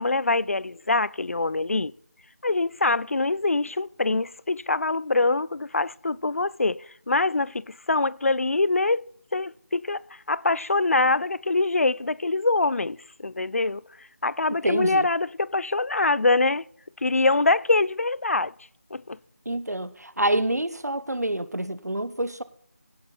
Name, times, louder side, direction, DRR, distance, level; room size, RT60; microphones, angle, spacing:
voice 1, 0.0-1.9 2.4-9.1 9.3-13.8 14.2-16.7 17.0-18.5 18.9-19.2, left 3 dB, 60° left, 0.4 m, -24 dB
voice 2, 14.6-15.1 19.5-22.4, right 1 dB, 90° right, 1.0 m, -27 dB
16.5 x 8.8 x 4.0 m
figure-of-eight pair, 170°, 9 cm